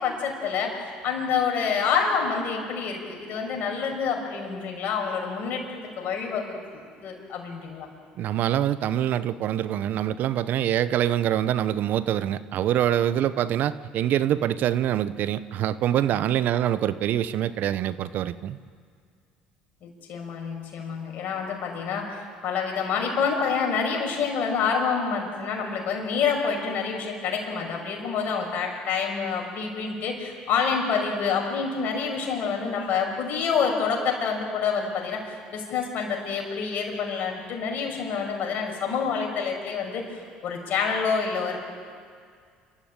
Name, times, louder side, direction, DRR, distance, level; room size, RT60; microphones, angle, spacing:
voice 1, 0.0-7.9 19.8-41.6, left 6 dB, 60° left, 1 dB, 6.2 m, -27 dB
voice 2, 8.2-18.6, right 11 dB, 60° right, 15 dB, 0.8 m, -25 dB
28.0 x 14.0 x 8.9 m, 2.1 s
hypercardioid pair, 75°, 3 cm